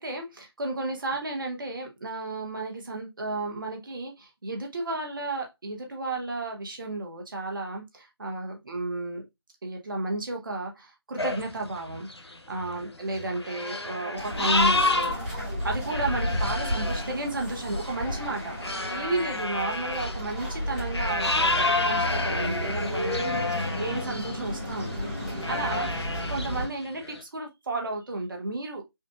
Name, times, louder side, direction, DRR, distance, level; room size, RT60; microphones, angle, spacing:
voice 1, 0.0-9.2 9.6-23.5 23.7-24.9 25.2-25.9 26.3-28.8, right 2 dB, 55° right, 1.0 m, -33 dB
sound 1, 11.2-15.2 15.6-24.5 24.7-25.0 25.4-27.2, left 2 dB, 90° left, 0.7 m, -30 dB
sound 2, 14.2-26.7, equal, ahead, 1.0 m, -32 dB
5.4 x 2.5 x 2.3 m
figure-of-eight pair, 155°, 14 cm